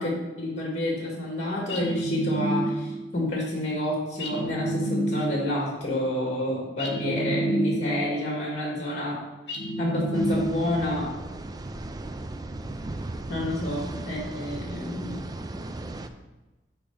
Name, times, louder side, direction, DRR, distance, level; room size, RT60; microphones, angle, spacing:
voice 1, 0.0-9.2 9.8-11.1 13.3-15.2, left 1 dB, 40° left, -2 dB, 2.0 m, -29 dB
sound 1, 1.7-3.1 4.2-5.5 6.8-8.2 9.5-10.9, right 1 dB, 70° left, 1.1 m, -28 dB
sound 2, 10.1-16.1, right 2 dB, 20° right, 0.4 m, -37 dB
6.9 x 5.0 x 5.3 m, 1.1 s
head